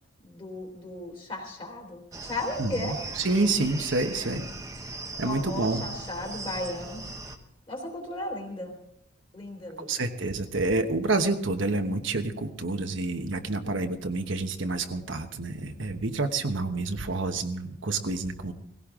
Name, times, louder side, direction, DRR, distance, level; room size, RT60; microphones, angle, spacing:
voice 1, 0.2-3.0 5.2-7.0 7.7-8.7 9.3-10.0, left 1 dB, 25° left, 2 dB, 3.1 m, -35 dB
sound 1, 2.1-7.4, right 2 dB, 15° right, 1.0 m, -39 dB
voice 2, 3.2-4.5 5.2-5.8 9.8-18.5, right 2 dB, 70° right, 6 dB, 1.1 m, -28 dB
18.5 x 16.5 x 3.7 m, 0.81 s
head